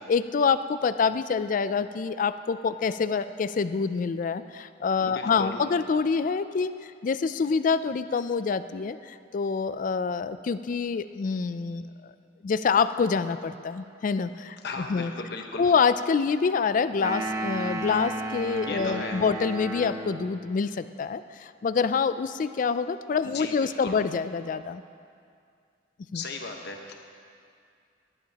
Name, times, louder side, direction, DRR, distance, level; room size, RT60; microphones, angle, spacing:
voice 1, 0.1-6.7 7.0-12.1 12.4-15.1 15.6-24.8 26.1-26.2, left 5 dB, 45° left, 13 dB, 0.3 m, -26 dB
voice 2, 5.0-5.6 14.6-15.7 18.7-19.2 23.2-24.0 26.1-26.9, left 3 dB, 60° left, 3 dB, 1.1 m, -36 dB
sound 1, 17.0-20.4, right 1 dB, 20° right, 0.9 m, -33 dB
18.5 x 11.5 x 2.9 m, 2.3 s
head